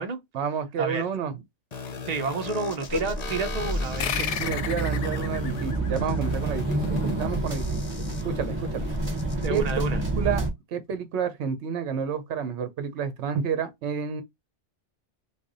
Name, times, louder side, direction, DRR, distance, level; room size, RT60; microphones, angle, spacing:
voice 1, 0.3-1.4 4.4-7.8 8.2-8.9 9.5-14.2, right 7 dB, 70° right, 0.9 m, -30 dB
sound 1, 1.7-9.7, left 4 dB, 45° left, 0.6 m, -38 dB
voice 2, 2.1-4.3 9.4-10.0, right 4 dB, 40° right, 0.7 m, -30 dB
sound 2, 2.9-10.5, right 2 dB, 25° right, 1.2 m, -29 dB
sound 3, 4.0-7.0, left 8 dB, 80° left, 0.9 m, -33 dB
3.3 x 2.2 x 3.8 m
omnidirectional pair, 1.2 m